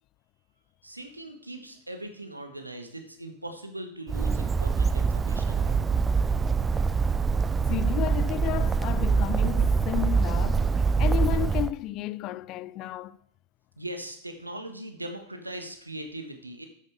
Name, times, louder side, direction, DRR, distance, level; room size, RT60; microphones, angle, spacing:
voice 1, 0.8-5.9 13.8-16.7, right 1 dB, 85° right, 1.5 m, -40 dB
Bird, 4.1-11.7, right 5 dB, 15° right, 0.5 m, -24 dB
voice 2, 7.7-10.7 11.0-13.2, left 15 dB, 40° left, 0.4 m, -32 dB
13.0 x 8.7 x 3.6 m
figure-of-eight pair, 90°, 0 cm